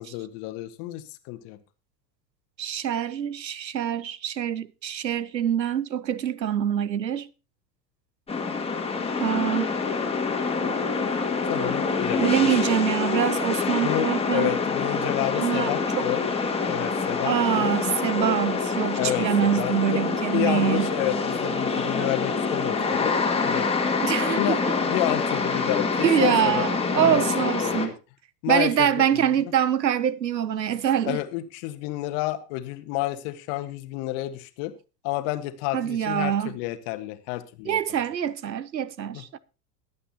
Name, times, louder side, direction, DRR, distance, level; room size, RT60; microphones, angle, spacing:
voice 1, 0.0-1.6 11.5-12.5 13.8-16.3 16.7-17.7 19.0-23.1 23.4-23.7 24.3-26.7 26.9-27.9 28.4-29.5 31.1-34.7 35.0-37.8 39.1-39.2, left 15 dB, 50° left, 1.5 m, -30 dB
voice 2, 2.6-7.3 9.2-9.7 12.2-14.5 15.3-16.0 17.2-20.9 24.0-24.6 26.0-27.9 28.5-31.2 35.7-36.5 37.7-39.4, right 9 dB, 90° right, 0.7 m, -25 dB
sound 1, 8.3-27.9, left 4 dB, 10° left, 2.3 m, -26 dB
21.5 x 8.4 x 2.9 m
figure-of-eight pair, 80°, 49 cm